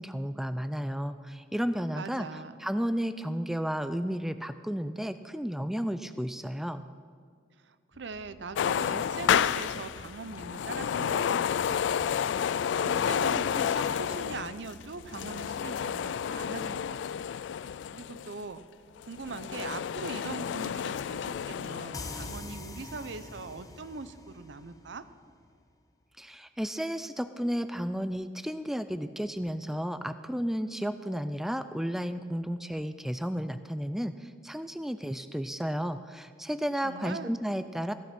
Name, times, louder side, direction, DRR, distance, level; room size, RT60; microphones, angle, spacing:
voice 1, 0.0-2.3 2.6-6.8 26.2-37.9, equal, ahead, 11 dB, 0.3 m, -33 dB
voice 2, 1.9-2.5 7.6-12.3 12.8-17.2 17.9-18.6 19.0-25.1 36.8-37.4, right 4 dB, 80° right, 13 dB, 0.6 m, -41 dB
sound 1, 7.9-16.5, right 1 dB, 50° left, 1.0 m, -54 dB
sound 2, 8.6-18.4 19.0-22.4, left 8 dB, 80° left, 0.3 m, -30 dB
sound 3, 21.9-25.5, left 2 dB, 20° left, 0.8 m, -44 dB
15.0 x 8.8 x 5.9 m, 2.1 s
head